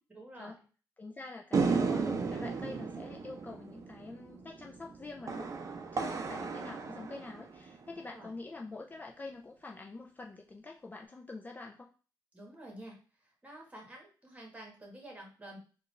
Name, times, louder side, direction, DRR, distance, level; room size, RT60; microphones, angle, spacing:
voice 1, 0.1-0.5 8.1-8.3 12.3-13.0 13.4-15.6, right 1 dB, 20° right, 0 dB, 1.4 m, -49 dB
voice 2, 1.0-5.6 5.9-11.9, left 3 dB, 25° left, 1 dB, 0.4 m, -46 dB
sound 1, 1.5-8.0, right 4 dB, 45° right, 0.5 m, -34 dB
3.9 x 2.4 x 3.2 m, 0.37 s
cardioid pair, 100°, 7 cm